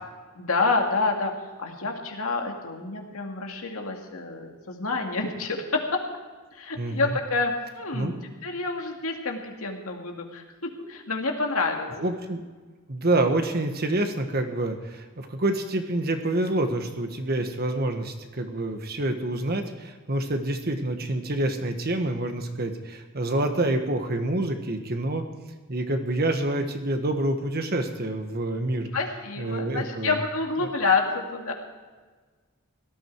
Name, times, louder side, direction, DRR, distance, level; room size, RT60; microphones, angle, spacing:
voice 1, 0.3-1.3 1.6-6.0 6.5-8.1 8.4-10.4 10.9-12.0 28.9-31.5, left 3 dB, 80° left, 2 dB, 2.2 m, -28 dB
voice 2, 6.7-7.2 7.9-8.1 12.0-12.4 12.9-25.2 25.7-28.9 29.4-30.2 30.6-30.7, right 1 dB, 45° right, 6 dB, 1.5 m, -27 dB
17.5 x 13.0 x 4.7 m, 1.4 s
head